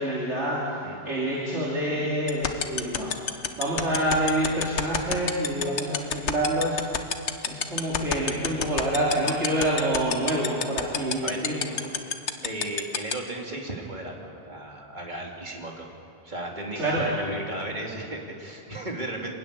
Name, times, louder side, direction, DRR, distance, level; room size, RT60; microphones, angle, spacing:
voice 1, 0.0-3.2 3.6-11.8 16.7-17.1, right 1 dB, 70° right, -6 dB, 3.2 m, -27 dB
sound 1, 2.3-13.1, left 7 dB, 65° left, 1.3 m, -25 dB
voice 2, 12.4-15.9 16.2-19.3, right 1 dB, 40° right, 0 dB, 2.8 m, -35 dB
25.0 x 13.5 x 9.6 m, 2.6 s
omnidirectional pair, 1.2 m